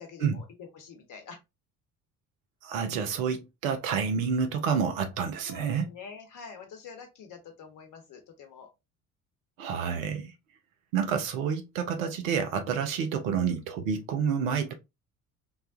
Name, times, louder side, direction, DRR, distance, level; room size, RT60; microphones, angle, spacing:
voice 1, 0.0-1.4 5.5-8.7, left 6 dB, 45° left, 1.0 m, -46 dB
voice 2, 2.6-5.9 9.6-10.3 10.9-14.7, right 6 dB, 65° right, 0.7 m, -29 dB
3.3 x 2.2 x 2.5 m
figure-of-eight pair, 55°, 43 cm